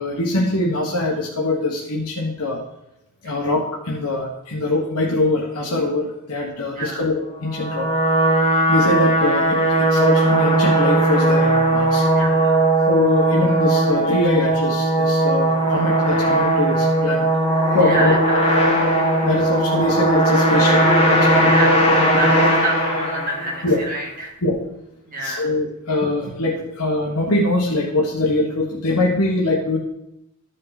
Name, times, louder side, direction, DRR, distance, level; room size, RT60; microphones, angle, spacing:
voice 1, 0.0-2.6 3.2-7.9 8.7-12.0 12.9-17.3 17.7-18.1 19.2-21.5 22.1-22.2 23.6-23.8 24.4-24.6 25.2-29.8, left 2 dB, 85° left, -3 dB, 1.3 m, -22 dB
voice 2, 6.7-7.1 12.1-12.6 17.5-18.8 21.5-24.4 25.1-25.5, right 1 dB, 40° right, -4 dB, 2.9 m, -29 dB
sound 1, 7.4-23.8, right 1 dB, 25° left, 2.4 m, -18 dB
13.5 x 5.3 x 4.1 m, 0.84 s
head